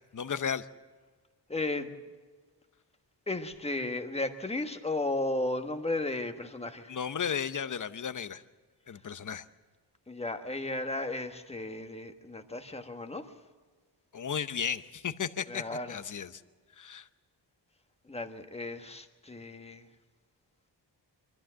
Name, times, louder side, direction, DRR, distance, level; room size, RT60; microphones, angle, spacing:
voice 1, 0.1-0.7 6.9-8.4 8.9-9.4 14.1-16.4 16.8-17.1, left 7 dB, 45° left, 12 dB, 0.8 m, -34 dB
voice 2, 1.5-1.9 3.3-7.0 10.1-13.3 15.5-16.0 18.1-19.8, left 2 dB, 15° left, 6 dB, 1.3 m, -34 dB
24.5 x 14.0 x 7.6 m, 1.5 s
wide cardioid pair, 170°, 43 cm